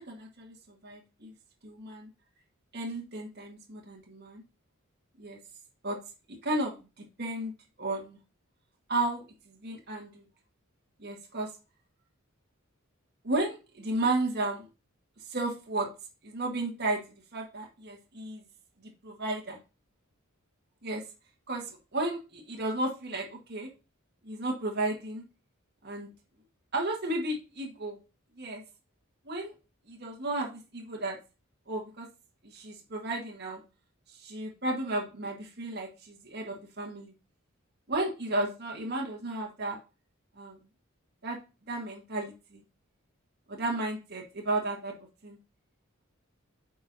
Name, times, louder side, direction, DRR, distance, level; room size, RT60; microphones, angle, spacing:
voice 1, 0.0-1.3 1.6-2.1 2.7-4.4 5.2-5.4 5.8-6.0 6.4-7.5 7.8-8.2 8.9-10.2 11.0-11.5 13.2-14.7 15.3-15.9 16.2-17.0 17.3-18.4 19.0-19.6 20.8-21.0 21.5-23.7 24.2-25.2 25.8-26.1 26.7-28.0 28.4-28.6 29.2-29.5 29.9-31.2 31.7-32.1 32.4-33.6 34.1-37.1 37.9-39.8 40.4-40.6 41.2-41.4 41.7-42.6 43.5-44.9 45.2-45.4, right 2 dB, 50° right, 0 dB, 1.4 m, -33 dB
8.8 x 5.4 x 2.7 m, 0.30 s
head